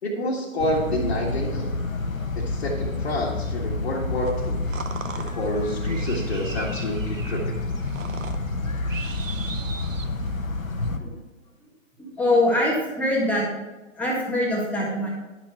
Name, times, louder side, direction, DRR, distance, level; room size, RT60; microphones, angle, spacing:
voice 1, 0.0-1.7 2.4-4.6 5.2-7.6 9.4-9.5, equal, 50° left, -3 dB, 1.8 m, -28 dB
sound 1, 0.6-11.0, left 2 dB, 85° left, 1.3 m, -29 dB
sound 2, 4.2-10.5, right 5 dB, 70° right, 1.1 m, -39 dB
voice 2, 12.2-13.5 13.9-15.1, left 1 dB, 5° left, -4 dB, 1.6 m, -23 dB
11.0 x 6.1 x 4.4 m, 1.1 s
figure-of-eight pair, 140°, 40 cm